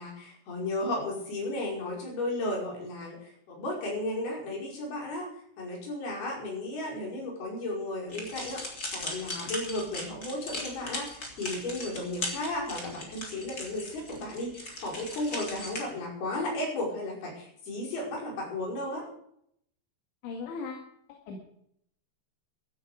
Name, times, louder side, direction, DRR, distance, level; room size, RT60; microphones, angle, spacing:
voice 1, 0.0-5.3 5.6-19.0, left 1 dB, 55° left, -2 dB, 6.9 m, -34 dB
sound 1, 8.1-15.8, left 2 dB, 20° left, 3.0 m, -38 dB
voice 2, 20.2-20.9 21.3-21.4, left 4 dB, 70° left, 1 dB, 4.3 m, -37 dB
16.0 x 12.5 x 5.1 m, 0.70 s
omnidirectional pair, 5.6 m